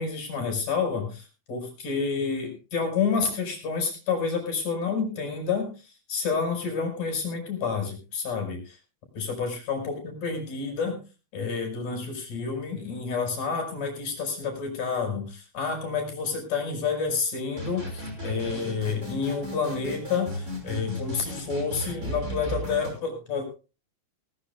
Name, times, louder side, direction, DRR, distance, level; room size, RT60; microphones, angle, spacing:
voice 1, 0.0-8.8 9.1-11.0 11.3-23.5, left 5 dB, 40° left, 4 dB, 6.3 m, -29 dB
sound 1, 17.5-22.9, equal, 15° right, 5.3 m, -35 dB
19.5 x 18.0 x 2.3 m, 0.32 s
omnidirectional pair, 5.5 m